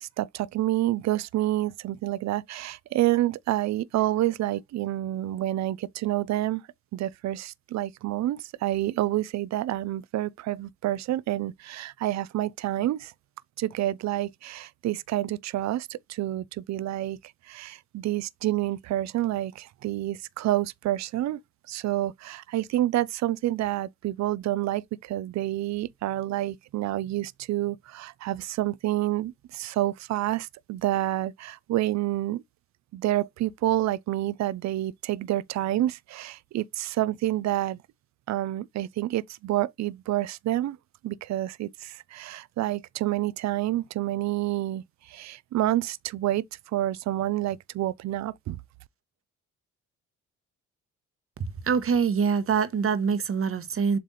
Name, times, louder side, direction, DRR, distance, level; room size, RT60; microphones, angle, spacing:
voice 1, 0.0-6.6 6.9-13.1 13.6-17.2 17.5-21.4 21.7-32.4 32.9-37.8 38.3-40.8 41.0-46.4 46.7-48.6, right 15 dB, 65° right, 0.5 m, -28 dB
voice 2, 51.6-54.0, right 6 dB, 45° right, 1.1 m, -24 dB
7.6 x 3.3 x 4.1 m
cardioid pair, 90°, 30 cm